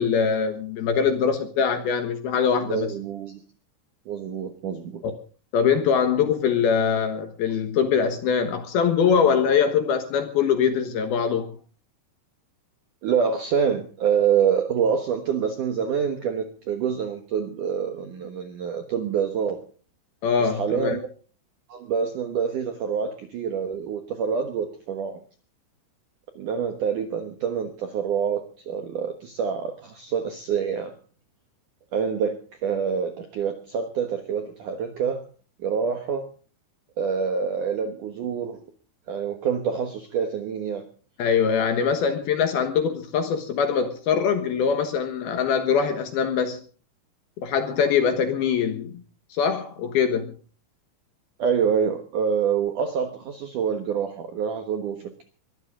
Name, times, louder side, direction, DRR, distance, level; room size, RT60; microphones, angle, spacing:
voice 1, 0.0-2.9 5.0-5.1 5.5-11.5 20.2-21.0 41.2-46.6 47.4-49.0 49.3-50.3, left 6 dB, 65° left, 2.8 m, -23 dB
voice 2, 2.7-3.4 4.1-5.0 13.0-19.6 20.4-21.1 21.7-25.2 26.4-30.9 31.9-32.4 32.6-35.2 35.6-36.2 37.0-38.6 39.1-40.8 51.4-55.2, right 7 dB, 70° right, 1.9 m, -26 dB
22.0 x 14.0 x 3.8 m
omnidirectional pair, 5.6 m